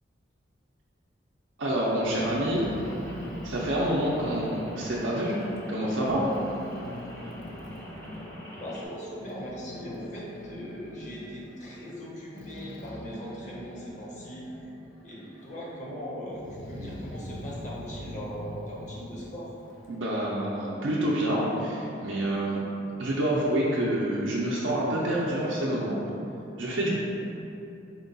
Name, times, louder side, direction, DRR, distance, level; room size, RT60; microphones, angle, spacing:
voice 1, 1.6-2.6 3.4-5.4 5.7-6.2 19.9-22.6 23.0-25.9 26.6-26.9, right 1 dB, 75° right, -6 dB, 0.5 m, -27 dB
Growling, 2.0-5.7 6.0-8.4 8.9-14.8 15.1-15.8 16.3-20.0, left 1 dB, 85° left, 0.5 m, -42 dB
Rain, 2.0-8.9, equal, 10° left, 0.4 m, -44 dB
voice 2, 8.6-14.7 15.0-19.5, equal, 40° left, -5 dB, 0.7 m, -39 dB
4.3 x 2.3 x 3.8 m, 2.8 s
head